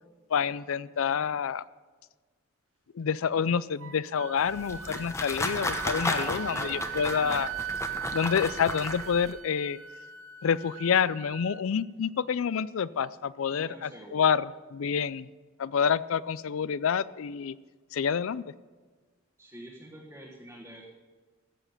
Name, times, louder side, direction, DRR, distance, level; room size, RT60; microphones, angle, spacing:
voice 1, 0.3-1.6 2.9-7.5 8.1-9.8 10.4-15.3 15.6-17.5 17.9-18.4, left 7 dB, 75° left, 19 dB, 0.4 m, -28 dB
Wind instrument woodwind instrument, 3.8-11.5, right 9 dB, 75° right, 0.9 m, -39 dB
sound 1, 4.4-9.3, left 2 dB, 15° left, 0.9 m, -34 dB
voice 2, 6.1-7.5 13.5-14.2 19.4-20.8, right 1 dB, 10° right, -4 dB, 1.3 m, -46 dB
14.5 x 7.3 x 6.7 m, 1.4 s
head